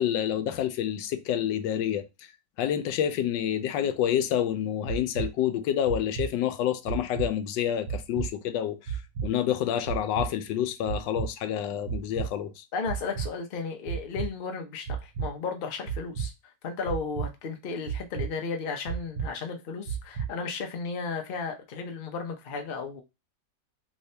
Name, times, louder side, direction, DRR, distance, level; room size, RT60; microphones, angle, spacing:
voice 1, 0.0-2.0 2.6-12.6, left 10 dB, 85° left, 1.3 m, -28 dB
sound 1, 4.9-5.3 5.9-6.3 6.9-7.3 7.9-8.3 8.9-9.3 9.9-10.3 10.9-11.3 11.9-12.3 12.9-13.3 13.9-14.3 14.9-15.3 15.9-16.3 16.9-17.3 17.9-18.3 18.9-19.3 19.9-20.3, right 8 dB, 80° right, 1.4 m, -31 dB
voice 2, 12.7-23.0, left 5 dB, 60° left, 0.6 m, -34 dB
3.3 x 2.8 x 3.2 m
omnidirectional pair, 1.9 m